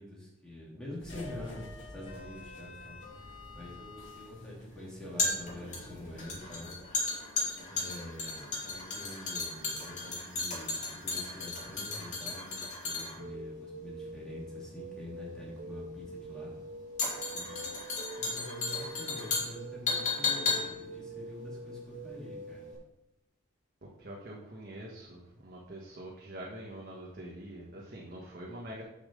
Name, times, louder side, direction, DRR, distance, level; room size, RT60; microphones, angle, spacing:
voice 1, 0.0-6.8 7.7-16.5 18.2-22.7, left 1 dB, 5° left, -6 dB, 2.9 m, -46 dB
sound 1, 1.0-7.5, left 2 dB, 70° left, 2.3 m, -49 dB
sound 2, 3.0-22.3 22.6-22.7, left 3 dB, 40° left, 2.5 m, -35 dB
voice 2, 7.5-7.9 17.3-17.7 24.0-28.8, right 1 dB, 50° right, -4 dB, 1.5 m, -45 dB
sound 3, 13.2-22.7, right 1 dB, 70° right, 2.0 m, -45 dB
7.1 x 5.9 x 6.8 m, 0.90 s
head